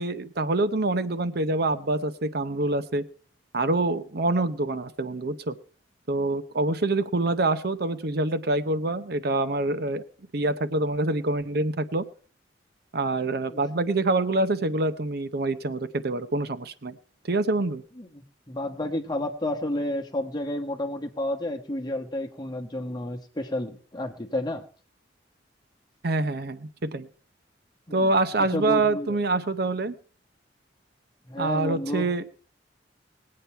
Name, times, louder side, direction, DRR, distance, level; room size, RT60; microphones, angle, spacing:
voice 1, 0.0-3.0 3.5-5.6 6.1-10.0 10.3-12.0 12.9-17.0 17.3-17.8 26.0-27.1 27.9-29.9 31.4-32.2, right 2 dB, 60° right, 12 dB, 0.8 m, -26 dB
voice 2, 18.0-24.6 27.9-29.1 31.2-32.1, left 1 dB, 25° left, 3 dB, 1.2 m, -31 dB
20.0 x 8.7 x 4.5 m, 0.43 s
head